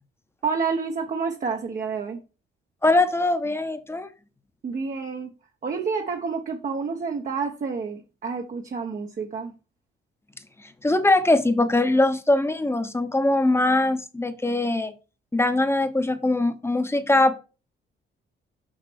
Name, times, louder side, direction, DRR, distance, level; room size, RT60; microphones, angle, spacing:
voice 1, 0.4-2.2 4.6-5.3 5.6-9.5, right 5 dB, 40° right, 1.0 m, -29 dB
voice 2, 2.8-4.1 10.8-14.9 15.3-17.4, left 2 dB, 10° left, 1.0 m, -21 dB
6.4 x 5.9 x 4.5 m
cardioid pair, 90°, 20 cm